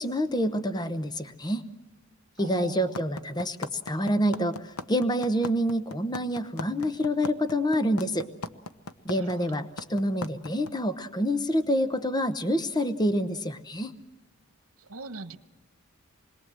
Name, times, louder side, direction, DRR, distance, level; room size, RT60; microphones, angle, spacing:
voice 1, 0.0-1.6 2.4-8.3 9.0-13.9, equal, 20° left, 10 dB, 0.9 m, -27 dB
voice 2, 2.4-2.9 9.2-9.6 14.9-15.4, right 3 dB, 75° right, 11 dB, 1.3 m, -40 dB
sound 1, 2.9-10.7, left 3 dB, 90° left, 1.0 m, -36 dB
27.0 x 21.5 x 7.6 m, 1.1 s
head